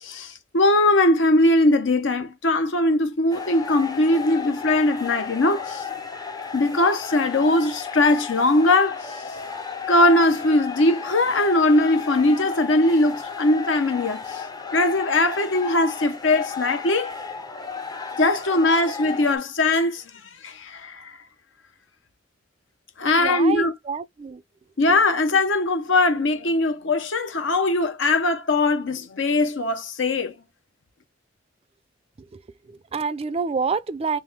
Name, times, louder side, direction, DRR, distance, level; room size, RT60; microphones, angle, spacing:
voice 1, 0.0-5.8 6.5-9.2 9.9-14.4 14.7-17.1 18.2-20.0 20.4-21.2 23.0-23.7 24.8-30.3, left 2 dB, 70° left, 0.8 m, -20 dB
sound 1, 3.3-19.4, left 6 dB, 20° left, 0.5 m, -34 dB
voice 2, 23.2-24.4 32.3-32.4 32.7-34.2, right 5 dB, 30° right, 0.3 m, -27 dB
3.5 x 3.0 x 3.3 m
head